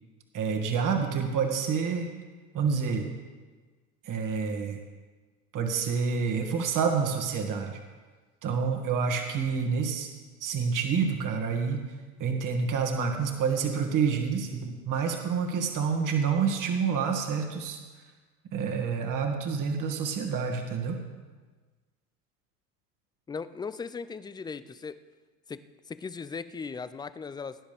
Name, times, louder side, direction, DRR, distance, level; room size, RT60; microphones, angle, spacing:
voice 1, 0.3-2.1 2.5-3.1 4.0-4.8 5.5-7.8 8.4-10.1 10.4-11.8 12.2-17.8 18.5-21.0, right 6 dB, 45° right, 3 dB, 2.1 m, -28 dB
voice 2, 23.3-25.0 25.5-27.6, left 5 dB, 10° left, 14 dB, 0.4 m, -38 dB
18.5 x 10.0 x 3.5 m, 1.4 s
hypercardioid pair, 80°, 45 cm